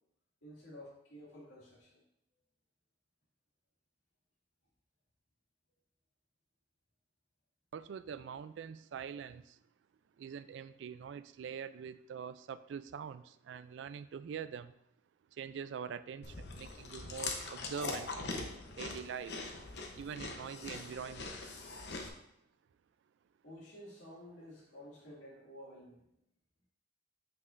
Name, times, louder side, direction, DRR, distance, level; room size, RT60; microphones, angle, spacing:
voice 1, 0.4-2.0 23.4-26.1, equal, 85° left, -4 dB, 2.3 m, -52 dB
voice 2, 7.7-9.6 10.2-14.7 15.3-19.4 19.9-21.6, right 7 dB, 70° right, 14 dB, 0.3 m, -44 dB
Chewing mastication, 16.2-22.1, left 3 dB, 60° left, 0.8 m, -42 dB
7.4 x 6.1 x 2.5 m, 0.75 s
head